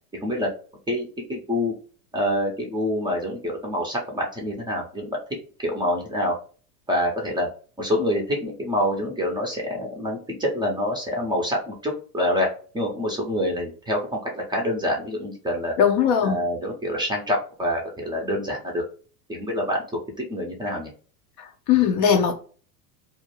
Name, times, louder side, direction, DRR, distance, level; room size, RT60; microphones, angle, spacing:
voice 1, 0.9-1.7 2.1-5.2 5.6-6.3 6.9-7.5 7.8-12.5 12.7-15.7 16.2-18.8 19.3-19.8 20.2-20.9, left 1 dB, 10° right, 0 dB, 0.5 m, -26 dB
voice 2, 15.8-16.4 21.7-22.3, left 8 dB, 45° left, 6 dB, 0.4 m, -19 dB
2.4 x 2.1 x 3.1 m, 0.40 s
hypercardioid pair, 90°, 48 cm